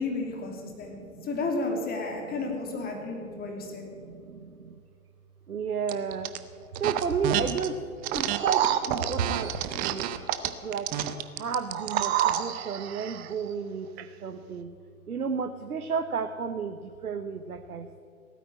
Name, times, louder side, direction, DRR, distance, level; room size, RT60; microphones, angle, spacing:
voice 1, 0.0-1.0 1.2-3.9, left 3 dB, 20° left, 2 dB, 2.9 m, -32 dB
voice 2, 0.6-1.3 2.3-2.4 3.2-4.7 5.5-6.3 6.8-10.1 10.6-10.9 11.3-13.9 14.2-14.7 15.1-18.0, right 5 dB, 85° right, 9 dB, 0.9 m, -33 dB
sound 1, 5.9-6.4 6.7-7.7 8.0-12.5, right 12 dB, 20° right, 0.6 m, -30 dB
sound 2, 8.3-9.7 11.7-13.3 14.0-14.1, right 11 dB, 45° right, 1.0 m, -29 dB
17.0 x 9.4 x 8.9 m, 2.4 s
figure-of-eight pair, 115°, 43 cm